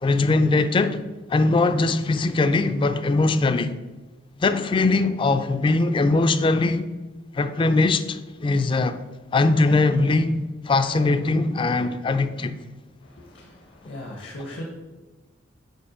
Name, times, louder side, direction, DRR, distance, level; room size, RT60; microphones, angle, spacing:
voice 1, 0.0-1.0 1.3-3.7 4.4-6.9 7.3-9.0 9.3-12.5, left 3 dB, 25° left, 0.3 m, -21 dB
voice 2, 13.0-14.6, left 1 dB, 65° left, 0.8 m, -38 dB
5.4 x 4.4 x 4.9 m
head